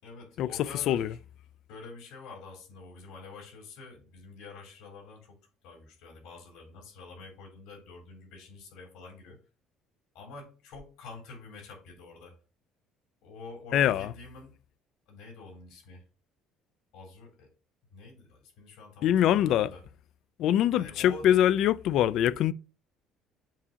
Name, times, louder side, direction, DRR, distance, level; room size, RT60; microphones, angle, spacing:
voice 1, 0.0-1.2 1.7-5.4 5.6-9.4 10.1-12.4 13.2-14.5 15.1-16.0 16.9-17.5 17.9-19.8 20.7-21.3, left 3 dB, 80° left, 3.7 m, -47 dB
voice 2, 13.7-14.1 19.0-19.7 20.4-22.5, left 11 dB, 60° left, 0.3 m, -23 dB
7.4 x 2.8 x 5.6 m
cardioid pair, 145°, 0 cm